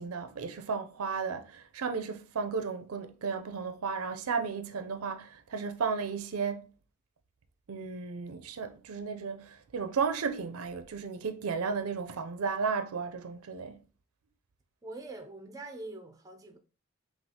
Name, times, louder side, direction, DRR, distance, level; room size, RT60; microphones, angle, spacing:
voice 1, 0.0-6.7 7.7-13.8, right 5 dB, 90° right, 0.5 m, -34 dB
voice 2, 14.8-16.6, right 2 dB, 15° right, 0.4 m, -44 dB
5.6 x 2.4 x 2.8 m
head